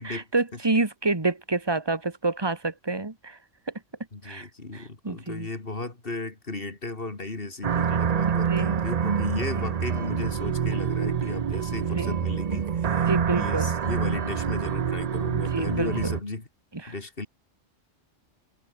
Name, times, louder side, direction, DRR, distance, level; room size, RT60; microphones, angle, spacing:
voice 1, 0.0-3.4 4.2-4.5 4.7-5.5 8.5-8.8 9.6-9.7 12.0-12.1 13.1-13.8 15.5-16.1 16.8-16.9, right 3 dB, 20° right, 1.8 m, -28 dB
voice 2, 4.1-13.1 13.3-16.5 16.9-17.3, left 2 dB, 45° left, 3.0 m, -34 dB
sound 1, 7.6-16.2, right 7 dB, 45° right, 0.5 m, -26 dB
omnidirectional pair, 1.3 m